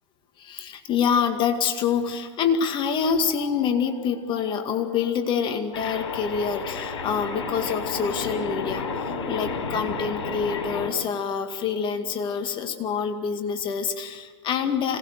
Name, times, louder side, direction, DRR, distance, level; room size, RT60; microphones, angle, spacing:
voice 1, 0.4-15.0, left 6 dB, 35° left, 6 dB, 2.1 m, -26 dB
sound 1, 5.7-10.9, left 4 dB, 75° left, 5.0 m, -31 dB
26.5 x 19.0 x 6.7 m, 1.5 s
hypercardioid pair, 115°, 15 cm